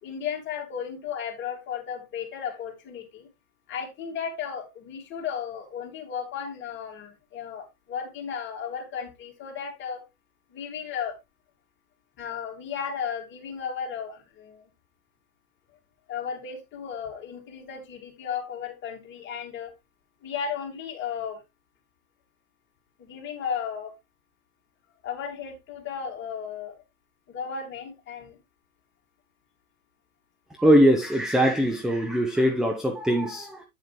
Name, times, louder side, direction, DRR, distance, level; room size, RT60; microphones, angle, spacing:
voice 1, 0.0-3.3 3.7-10.0 10.5-11.2 12.2-14.6 16.1-19.7 20.2-21.4 23.0-23.9 25.0-26.8 27.3-28.4, left 7 dB, 25° left, 3.1 m, -34 dB
voice 2, 30.6-33.6, equal, ahead, 0.6 m, -21 dB
9.1 x 7.3 x 3.1 m
figure-of-eight pair, 105°, 43 cm